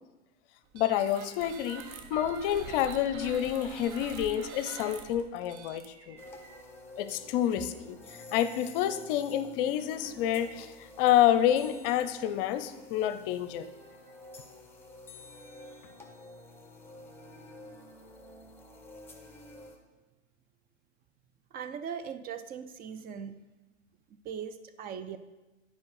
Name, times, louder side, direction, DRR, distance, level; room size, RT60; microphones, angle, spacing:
voice 1, 0.7-6.2 7.0-8.0 8.3-10.7 11.0-13.7, left 11 dB, 50° left, 12 dB, 0.7 m, -28 dB
sound 1, 0.7-6.6, right 6 dB, 40° right, 0.9 m, -46 dB
sound 2, 6.2-19.8, left 2 dB, 5° left, 1.2 m, -50 dB
voice 2, 21.5-23.4 24.1-25.2, right 7 dB, 25° right, 10 dB, 0.5 m, -39 dB
9.5 x 4.6 x 4.8 m, 1.1 s
hypercardioid pair, 105°, 36 cm